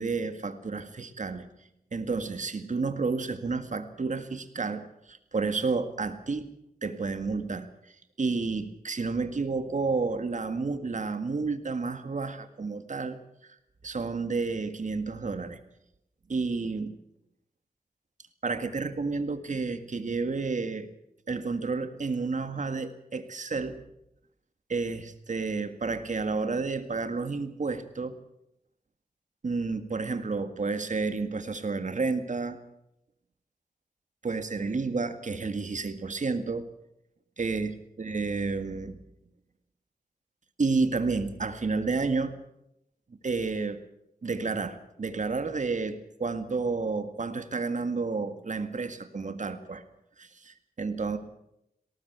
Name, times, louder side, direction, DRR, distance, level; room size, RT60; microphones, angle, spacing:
voice 1, 0.0-1.5 1.9-6.5 6.8-7.7 8.2-13.2 13.8-15.6 16.3-17.0 18.4-20.9 21.3-23.8 24.7-28.2 29.4-32.6 34.2-36.7 37.4-39.0 40.6-42.4 43.2-43.8 44.2-49.8 50.2-51.2, right 4 dB, 50° right, 9 dB, 1.9 m, -30 dB
19.5 x 18.0 x 8.1 m, 0.82 s
wide cardioid pair, 120°, 16 cm